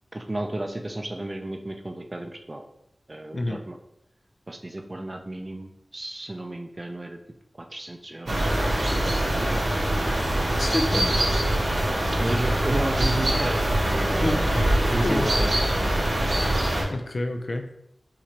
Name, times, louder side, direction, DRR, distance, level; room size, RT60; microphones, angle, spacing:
voice 1, 0.1-2.6 3.1-3.8 4.5-7.2 7.7-9.7 12.2-14.5 14.9-15.7, right 1 dB, 35° right, 4 dB, 0.6 m, -33 dB
sound 1, 8.3-16.8, right 1 dB, 70° right, 1.7 m, -23 dB
voice 2, 10.6-11.2 14.2-14.5 15.0-15.3 16.9-17.7, left 1 dB, 60° left, 5 dB, 0.5 m, -28 dB
5.8 x 2.7 x 3.3 m, 0.79 s
wide cardioid pair, 75°, 0 cm